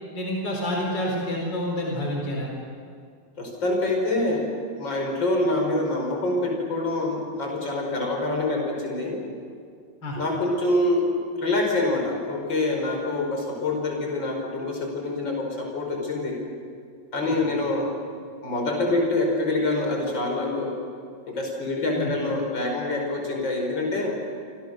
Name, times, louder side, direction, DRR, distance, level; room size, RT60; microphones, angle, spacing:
voice 1, 0.1-2.5 10.0-10.2 17.2-17.4 21.9-22.1, equal, 70° left, -1 dB, 4.9 m, -28 dB
voice 2, 3.4-4.5 4.8-9.2 10.2-11.1 11.4-16.4 17.1-17.9 18.4-20.8 21.3-24.1, left 2 dB, 90° left, 1 dB, 5.8 m, -26 dB
27.5 x 27.0 x 6.6 m, 2.2 s
omnidirectional pair, 2.0 m